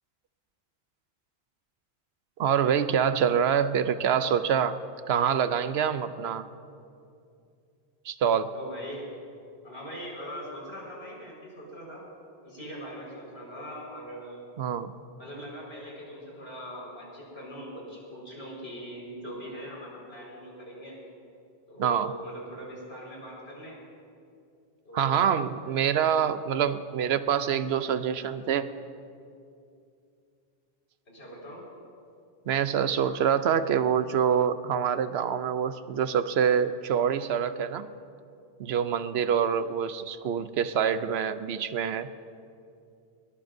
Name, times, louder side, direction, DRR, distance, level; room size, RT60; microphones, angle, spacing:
voice 1, 2.4-4.8 5.1-6.5 8.0-8.5 14.6-14.9 21.8-22.1 24.9-28.7 32.5-37.9 38.6-42.1, right 8 dB, 80° right, 12 dB, 0.9 m, -26 dB
voice 2, 8.5-9.1 9.6-12.0 12.4-14.4 15.2-21.0 21.7-23.8 24.8-25.2 31.1-31.7, equal, 75° left, -4 dB, 5.1 m, -41 dB
21.5 x 19.5 x 2.6 m, 2.5 s
omnidirectional pair, 1.1 m